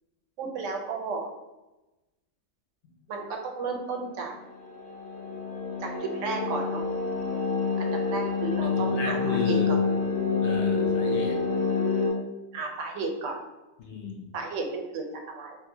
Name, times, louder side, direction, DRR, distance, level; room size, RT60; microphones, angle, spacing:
voice 1, 0.4-1.3 3.1-4.3 5.8-6.9 7.8-9.2 9.4-9.6 12.5-13.4 14.3-15.6, right 4 dB, 85° right, 2 dB, 1.0 m, -33 dB
sound 1, 4.3-12.1, left 5 dB, 55° left, 1.3 m, -27 dB
voice 2, 8.6-9.7 10.4-11.4 13.8-14.3, left 3 dB, 70° left, 1 dB, 0.9 m, -33 dB
3.7 x 2.4 x 2.7 m, 1.0 s
omnidirectional pair, 1.2 m